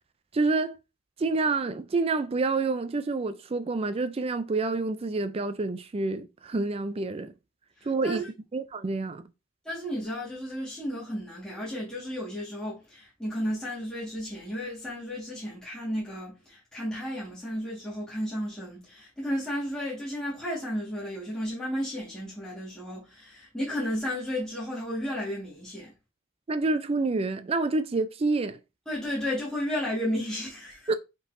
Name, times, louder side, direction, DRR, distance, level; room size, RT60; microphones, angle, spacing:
voice 1, 0.3-0.8 1.2-7.3 7.9-8.2 8.5-9.2 26.5-28.6 30.9-31.0, right 3 dB, 25° right, 0.4 m, -28 dB
voice 2, 7.8-8.3 9.6-25.9 28.8-30.9, equal, 5° left, 1.6 m, -33 dB
5.3 x 3.8 x 2.6 m
head